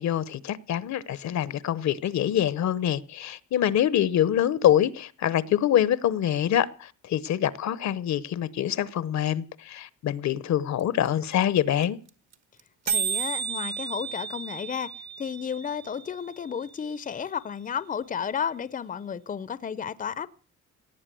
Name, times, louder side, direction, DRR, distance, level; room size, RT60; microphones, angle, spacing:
voice 1, 0.0-12.0, left 10 dB, 65° left, 0.9 m, -25 dB
sound 1, 10.8-10.9 11.1-11.2 11.3-11.6 11.8-11.9 12.1-12.3 12.6-12.7 12.9-16.8, right 6 dB, 60° right, 1.6 m, -33 dB
voice 2, 12.9-14.9 15.2-20.3, left 7 dB, 30° left, 0.6 m, -32 dB
18.5 x 8.7 x 7.6 m
cardioid pair, 90°, 30 cm